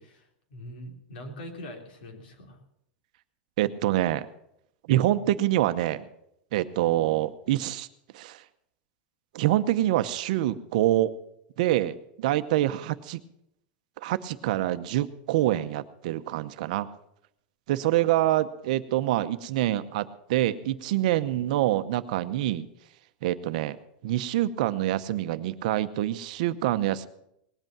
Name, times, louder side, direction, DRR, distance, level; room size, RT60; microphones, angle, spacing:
voice 1, 0.0-2.6, equal, 85° left, 4 dB, 3.2 m, -43 dB
voice 2, 3.6-4.3 4.9-6.1 6.5-7.9 8.1-8.4 9.3-11.1 11.6-13.2 14.0-16.9 17.7-22.7 23.2-23.8 24.0-27.1, right 14 dB, 55° right, 11 dB, 0.8 m, -26 dB
19.0 x 8.1 x 7.3 m, 0.76 s
supercardioid pair, 175°, 5 cm